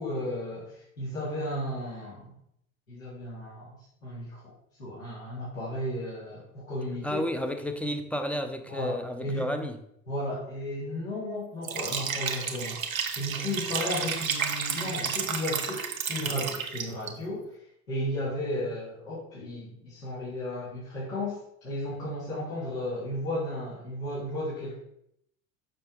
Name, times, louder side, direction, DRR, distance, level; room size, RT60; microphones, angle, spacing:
voice 1, 0.0-2.3 2.9-3.7 4.0-4.5 4.8-7.2 8.7-9.5 10.1-17.6 17.9-21.4 21.6-24.8, left 1 dB, 80° left, 2.7 m, -34 dB
voice 2, 7.0-9.8, equal, 5° left, 0.7 m, -31 dB
Liquid, 11.6-17.1, right 6 dB, 90° right, 0.7 m, -31 dB
6.7 x 5.6 x 3.8 m
figure-of-eight pair, 65°, 40 cm